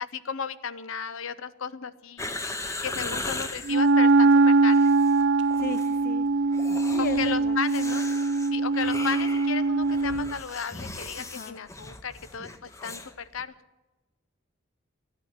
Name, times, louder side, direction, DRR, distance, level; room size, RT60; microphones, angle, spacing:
voice 1, 0.0-2.3 2.8-4.9 7.0-8.0 8.5-13.5, left 6 dB, 85° left, 15 dB, 0.7 m, -34 dB
sound 1, 2.2-3.8 4.6-5.3 5.5-5.9 6.5-13.1 13.4-13.5, left 2 dB, 15° left, 0.7 m, -38 dB
Wind instrument woodwind instrument, 3.7-10.3, right 3 dB, 60° right, 0.4 m, -22 dB
voice 2, 5.6-6.3 6.9-7.6 11.2-11.6, left 4 dB, 45° left, 15 dB, 0.4 m, -36 dB
13.5 x 9.1 x 9.3 m, 1.1 s
head